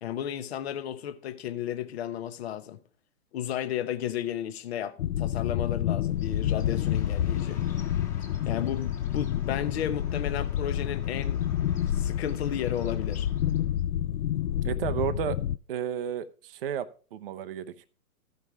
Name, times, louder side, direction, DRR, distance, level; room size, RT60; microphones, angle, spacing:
voice 1, 0.0-2.8 3.3-7.6 8.5-11.4 11.9-13.3, left 10 dB, 45° left, 0.9 m, -33 dB
sound 1, 5.0-15.6, left 11 dB, 65° left, 0.6 m, -29 dB
Bird, 6.1-13.8, left 4 dB, 15° left, 1.6 m, -51 dB
voice 2, 14.6-15.4 15.7-17.9, right 9 dB, 40° right, 0.6 m, -32 dB
13.5 x 5.5 x 4.5 m
hypercardioid pair, 140°, 46 cm